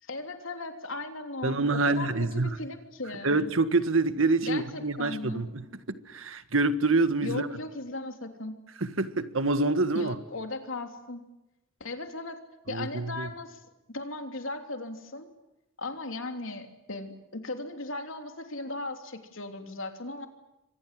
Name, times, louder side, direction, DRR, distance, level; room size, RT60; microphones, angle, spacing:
voice 1, 0.0-3.3 4.4-5.5 7.2-8.6 9.9-11.2 11.8-12.4 12.7-13.6 13.9-15.3 15.8-20.3, left 2 dB, 85° left, 3.2 m, -37 dB
voice 2, 1.4-2.6 3.2-7.5 8.8-10.1 12.7-13.3, right 3 dB, 90° right, 1.6 m, -26 dB
28.0 x 25.0 x 7.6 m
head